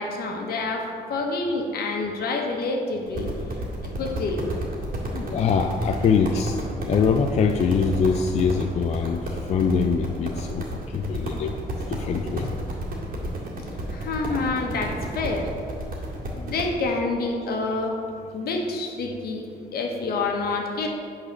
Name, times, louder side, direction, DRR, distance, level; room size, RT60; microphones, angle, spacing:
voice 1, 0.0-3.3 4.0-4.5 13.9-15.5 16.3-18.0 18.3-19.5 19.7-20.9, left 3 dB, 75° left, 1 dB, 1.2 m, -27 dB
sound 1, 3.1-16.7, right 1 dB, 65° right, 2.0 m, -32 dB
voice 2, 5.1-6.6 6.8-9.2 9.5-10.7 10.9-11.5 11.9-12.5, left 6 dB, 45° left, 5 dB, 0.4 m, -23 dB
8.8 x 4.0 x 6.5 m, 2.3 s
wide cardioid pair, 165°, 16 cm